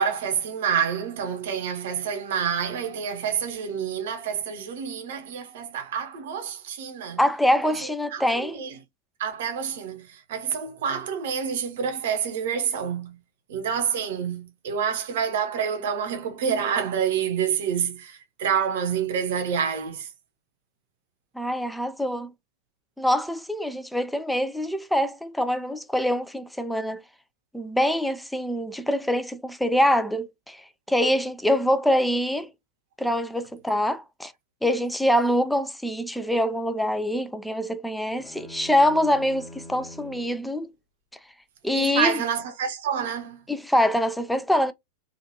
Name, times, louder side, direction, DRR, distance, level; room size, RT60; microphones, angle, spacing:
voice 1, 0.0-7.2 7.6-7.8 8.1-8.2 8.5-8.7 9.2-13.2 13.5-20.1 41.7-43.4, right 7 dB, 55° right, 0.7 m, -28 dB
voice 2, 7.2-8.6 21.4-22.3 23.0-27.0 27.5-30.6 30.9-32.5 33.0-34.3 34.6-40.7 41.6-42.2 43.5-44.7, equal, ahead, 0.3 m, -24 dB
sound 1, 38.2-40.4, left 1 dB, 20° left, 1.1 m, -43 dB
3.1 x 2.4 x 2.7 m
figure-of-eight pair, 90°, 0 cm